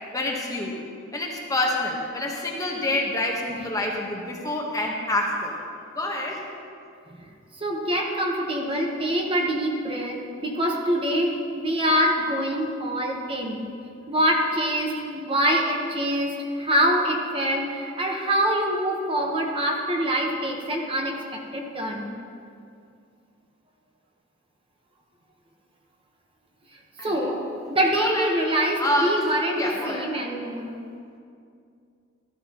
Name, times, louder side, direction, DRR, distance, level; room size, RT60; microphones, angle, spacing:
voice 1, 0.1-0.8 1.1-5.6 5.9-6.4 27.0-27.3 27.8-28.3 28.8-29.2 29.5-30.1, left 1 dB, 15° left, -1 dB, 1.1 m, -27 dB
voice 2, 7.6-13.7 14.1-22.1 27.0-27.4 27.7-30.7, equal, 25° right, 0 dB, 1.1 m, -25 dB
14.0 x 12.5 x 3.0 m, 2.4 s
head